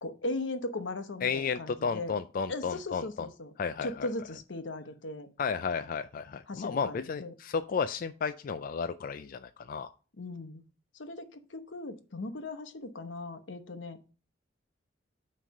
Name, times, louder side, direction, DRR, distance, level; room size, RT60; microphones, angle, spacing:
voice 1, 0.0-2.1 2.5-3.5 3.8-5.3 6.5-7.3 10.2-10.6 10.9-14.0, left 2 dB, 85° left, 9 dB, 0.9 m, -38 dB
voice 2, 1.2-3.3 3.6-4.1 5.4-9.9, left 6 dB, 50° left, 10 dB, 0.4 m, -33 dB
9.2 x 3.3 x 5.2 m, 0.35 s
head